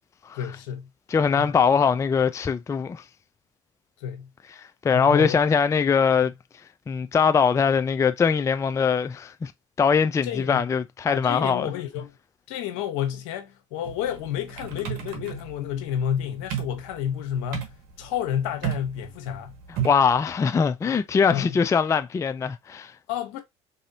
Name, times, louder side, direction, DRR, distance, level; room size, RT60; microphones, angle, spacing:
voice 1, 0.3-0.9 1.4-1.5 4.0-4.3 4.9-5.4 10.2-10.7 11.1-12.1 12.5-19.5 21.3-21.6 23.1-23.4, left 9 dB, 75° left, 1.0 m, -30 dB
voice 2, 1.1-3.0 4.6-6.3 6.9-9.5 9.8-11.7 19.8-22.9, left 6 dB, 20° left, 0.3 m, -22 dB
sound 1, 13.8-20.2, right 10 dB, 65° right, 1.2 m, -34 dB
4.0 x 2.7 x 2.7 m
hypercardioid pair, 70°, 16 cm